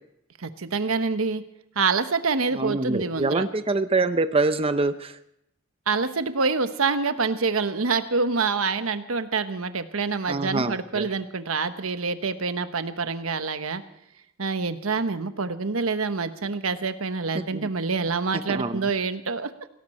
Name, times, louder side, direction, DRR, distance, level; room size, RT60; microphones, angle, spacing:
voice 1, 0.4-1.4 1.8-3.4 5.9-13.8 14.4-19.5, right 4 dB, 90° right, 10 dB, 1.1 m, -26 dB
voice 2, 2.5-5.2 10.3-11.1 17.3-17.7 18.5-18.9, right 3 dB, 25° right, 10 dB, 0.6 m, -25 dB
18.0 x 17.5 x 4.3 m, 0.77 s
head